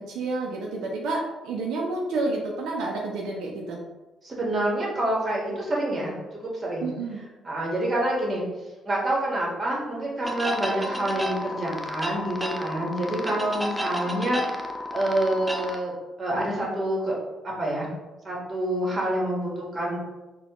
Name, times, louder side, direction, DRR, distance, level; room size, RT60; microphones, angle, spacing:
voice 1, 0.0-3.8 6.8-7.2, right 3 dB, 85° right, -1 dB, 0.4 m, -29 dB
voice 2, 4.2-6.9 7.4-8.4 8.8-15.9 16.2-17.2 17.4-17.9 18.2-20.0, right 1 dB, 35° right, -3 dB, 1.3 m, -27 dB
sound 1, 10.2-15.8, left 1 dB, 5° right, 0.4 m, -32 dB
4.1 x 2.2 x 2.9 m, 1.1 s
cardioid pair, 90°, 0 cm